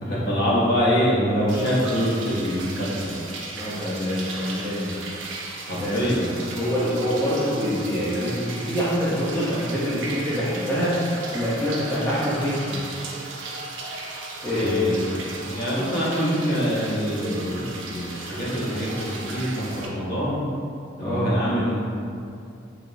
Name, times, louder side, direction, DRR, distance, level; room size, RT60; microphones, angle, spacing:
voice 1, 0.0-3.2 5.6-6.3 14.4-20.4 21.0-21.8, equal, 50° left, -8 dB, 0.7 m, -25 dB
sound 1, 1.5-19.9, right 3 dB, 70° right, 0.4 m, -36 dB
voice 2, 3.6-5.0 5.8-6.1 6.5-10.9 11.3-12.8 14.4-14.9 21.0-21.3, equal, 10° left, -11 dB, 0.4 m, -25 dB
2.9 x 2.8 x 2.5 m, 2.5 s
head